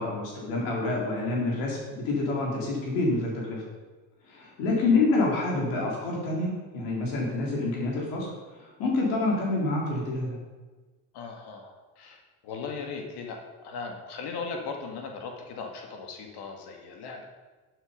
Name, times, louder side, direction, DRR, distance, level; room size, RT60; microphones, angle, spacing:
voice 1, 0.0-3.6 4.3-8.3 8.5-10.4, left 2 dB, 85° left, -2 dB, 3.8 m, -27 dB
voice 2, 11.1-17.2, left 4 dB, 70° left, 2 dB, 2.1 m, -38 dB
11.5 x 9.0 x 5.2 m, 1.3 s
supercardioid pair, 80°, 41 cm